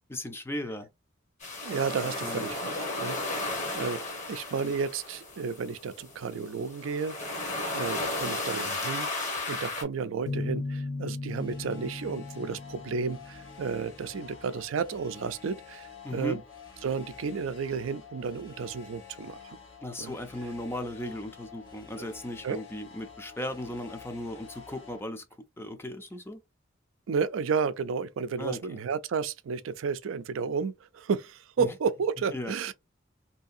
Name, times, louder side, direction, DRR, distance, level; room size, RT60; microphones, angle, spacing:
voice 1, 0.1-0.9 2.2-2.4 16.0-16.4 19.8-25.2 25.6-26.4 28.4-28.8 31.6-31.7 32.3-32.5, left 1 dB, 10° left, 0.5 m, -36 dB
sound 1, 1.4-9.8, left 2 dB, 40° left, 1.0 m, -34 dB
voice 2, 1.6-4.0 4.3-16.4 16.8-19.4 20.0-20.2 22.4-22.6 27.1-32.7, right 5 dB, 75° right, 0.4 m, -32 dB
sound 2, 10.3-13.9, left 2 dB, 55° left, 0.7 m, -37 dB
sound 3, 11.3-25.0, left 6 dB, 75° left, 1.0 m, -49 dB
2.8 x 2.6 x 2.5 m
head